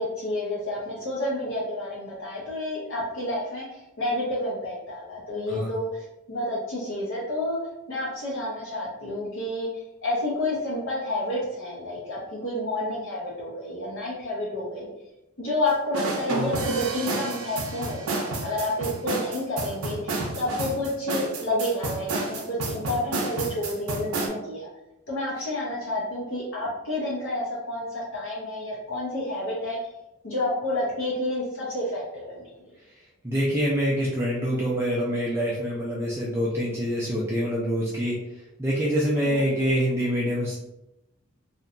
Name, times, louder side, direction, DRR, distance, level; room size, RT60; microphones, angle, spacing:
voice 1, 0.0-7.6 7.9-9.7 10.0-14.9 15.4-24.7 25.1-29.8 30.2-32.7 39.3-39.6, left 1 dB, 60° left, -5 dB, 0.6 m, -30 dB
sound 1, 15.9-24.3, right 3 dB, 80° right, 0.5 m, -30 dB
voice 2, 33.2-38.2 38.6-40.5, equal, 10° right, -6 dB, 0.3 m, -25 dB
2.8 x 2.2 x 2.5 m, 0.92 s
head